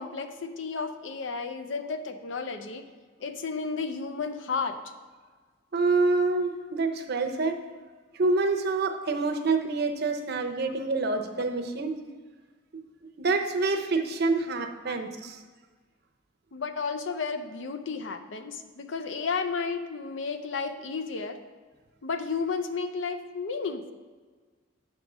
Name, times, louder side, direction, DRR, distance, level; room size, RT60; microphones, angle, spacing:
voice 1, 0.0-2.9 3.2-4.8 10.6-10.7 11.4-11.5 14.9-15.0 16.5-21.4 22.0-23.9, left 5 dB, 75° left, 8 dB, 0.6 m, -32 dB
voice 2, 5.7-7.6 8.1-11.9 13.2-15.4, right 3 dB, 60° right, 5 dB, 0.7 m, -27 dB
8.3 x 3.8 x 6.0 m, 1.5 s
head